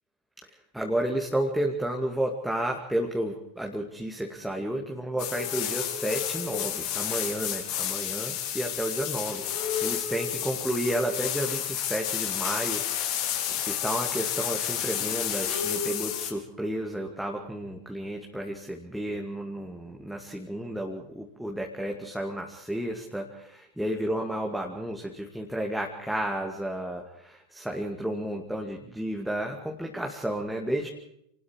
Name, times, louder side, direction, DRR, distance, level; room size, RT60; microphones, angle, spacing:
voice 1, 0.7-12.9 13.7-30.9, right 1 dB, ahead, 1 dB, 2.4 m, -32 dB
sound 1, 5.2-16.3, left 9 dB, 45° left, 4.2 m, -31 dB
28.5 x 20.0 x 4.8 m, 0.75 s
figure-of-eight pair, 90°, 0 cm